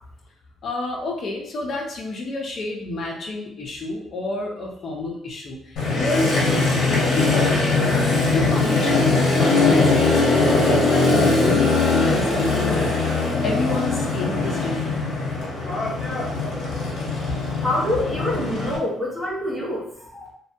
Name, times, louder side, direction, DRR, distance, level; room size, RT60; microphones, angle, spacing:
voice 1, 0.6-7.7 8.3-12.8 13.4-15.0, left 2 dB, 40° left, 0 dB, 0.5 m, -29 dB
Motorcycle, 5.8-18.8, left 3 dB, 65° left, 0.8 m, -21 dB
voice 2, 17.6-20.3, left 1 dB, ahead, -6 dB, 0.7 m, -26 dB
2.6 x 2.2 x 2.5 m, 0.70 s
cardioid pair, 175°, 0 cm